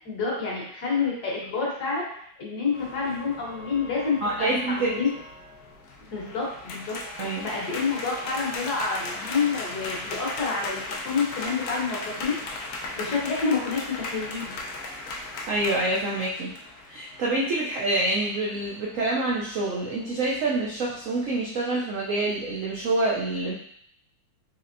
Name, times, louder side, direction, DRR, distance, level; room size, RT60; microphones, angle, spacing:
voice 1, 0.0-2.0 2.4-5.1 6.1-12.5 13.0-14.5, left 4 dB, 60° left, -3 dB, 1.4 m, -28 dB
sound 1, 2.7-21.4, left 2 dB, 80° left, 0.7 m, -38 dB
voice 2, 4.2-5.0 7.2-7.5 15.5-16.5 16.9-23.5, right 2 dB, 85° right, -5 dB, 0.7 m, -26 dB
4.3 x 3.1 x 2.5 m, 0.68 s
omnidirectional pair, 2.1 m